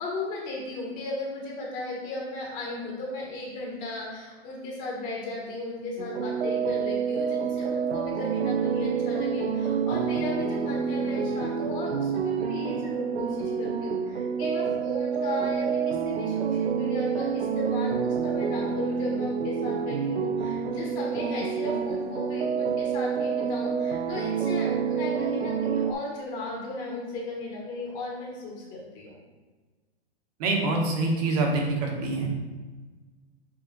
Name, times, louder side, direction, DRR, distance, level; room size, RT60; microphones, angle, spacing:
voice 1, 0.0-29.2, left 2 dB, 25° left, -3 dB, 1.4 m, -35 dB
sound 1, 6.0-25.9, right 6 dB, 90° right, 0.6 m, -28 dB
voice 2, 30.4-32.3, right 2 dB, 40° right, 1 dB, 1.4 m, -25 dB
5.7 x 3.5 x 5.2 m, 1.3 s
hypercardioid pair, 155°, 32 cm